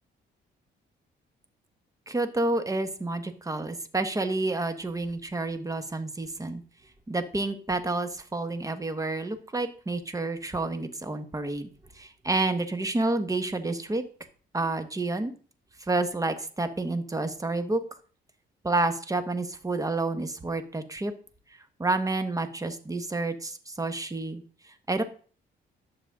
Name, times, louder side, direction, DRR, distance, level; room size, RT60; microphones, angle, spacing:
voice 1, 2.1-6.6 7.1-11.7 11.9-14.0 14.5-15.3 15.8-17.8 18.6-21.1 21.8-25.0, right 2 dB, 15° right, 9 dB, 1.3 m, -29 dB
11.0 x 6.9 x 3.7 m, 0.40 s
cardioid pair, 90°, 20 cm